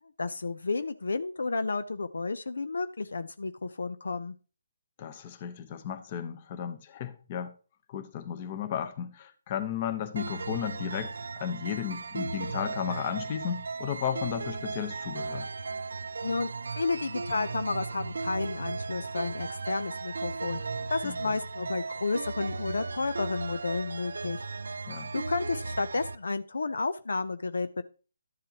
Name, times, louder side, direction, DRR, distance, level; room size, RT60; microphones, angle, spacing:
voice 1, 0.2-4.3 16.2-24.4 25.1-27.8, left 3 dB, 80° left, 0.6 m, -32 dB
voice 2, 5.0-7.5 7.9-15.5 21.0-21.4 24.9-25.1, left 9 dB, 30° left, 1.0 m, -34 dB
sound 1, 10.2-26.2, right 3 dB, 80° right, 0.6 m, -36 dB
12.5 x 7.5 x 3.0 m
hypercardioid pair, 155°, 0 cm